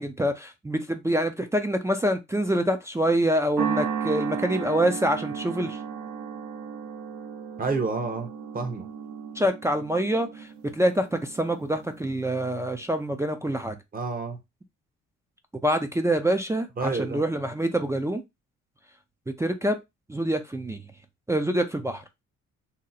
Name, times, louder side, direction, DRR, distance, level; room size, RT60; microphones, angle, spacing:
voice 1, 0.0-5.8 9.4-10.5 10.7-13.8 15.6-18.2 19.4-19.8 20.1-20.9 21.3-22.0, right 1 dB, 10° right, 0.4 m, -26 dB
sound 1, 3.6-12.1, right 7 dB, 75° right, 0.8 m, -34 dB
voice 2, 7.6-8.9 13.9-14.4 16.8-17.2, right 4 dB, 30° right, 0.8 m, -29 dB
2.8 x 2.0 x 3.9 m
cardioid pair, 90°, 30 cm